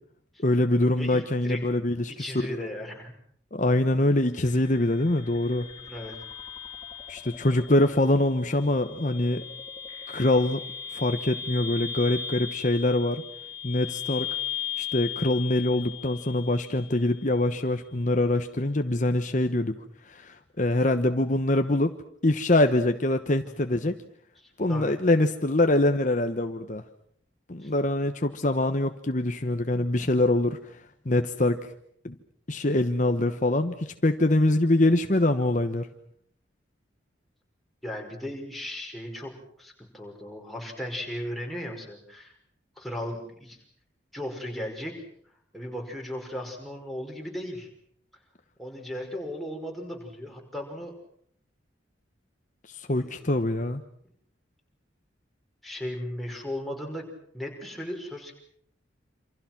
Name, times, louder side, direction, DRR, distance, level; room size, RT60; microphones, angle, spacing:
voice 1, 0.4-2.7 3.5-5.7 7.1-9.4 10.1-10.6 10.9-13.2 13.6-14.4 14.8-21.9 22.2-24.0 24.6-26.8 27.5-30.6 31.0-31.6 32.0-32.1 32.5-35.9 52.7-53.8, left 1 dB, 40° left, 7 dB, 1.1 m, -24 dB
voice 2, 1.0-1.6 2.2-3.1 5.9-6.2 23.8-23.9 24.4-25.0 27.6-27.7 37.8-39.3 39.6-42.3 42.8-43.6 44.1-44.9 45.5-47.7 48.6-50.9 52.9-53.4 55.6-57.1 57.3-58.3, left 1 dB, ahead, 0 dB, 5.5 m, -36 dB
sound 1, 4.3-17.3, left 8 dB, 25° left, 3.7 m, -38 dB
28.0 x 27.0 x 6.1 m, 0.65 s
head